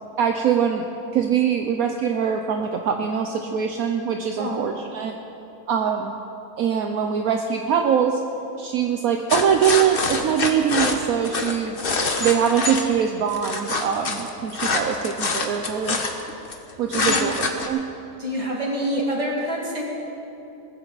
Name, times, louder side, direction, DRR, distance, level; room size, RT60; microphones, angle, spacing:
voice 1, 0.2-0.9 1.1-5.1 5.7-6.1 6.6-8.2 8.6-11.8 12.2-16.0 16.8-17.8, right 8 dB, 65° right, 4 dB, 1.1 m, -23 dB
sound 1, 9.3-12.8 13.3-16.5 16.9-17.7, left 3 dB, 40° left, 1.1 m, -25 dB
voice 2, 16.9-17.3 18.2-19.8, equal, 20° right, -2 dB, 2.4 m, -26 dB
19.5 x 14.5 x 4.1 m, 2.9 s
omnidirectional pair, 1.7 m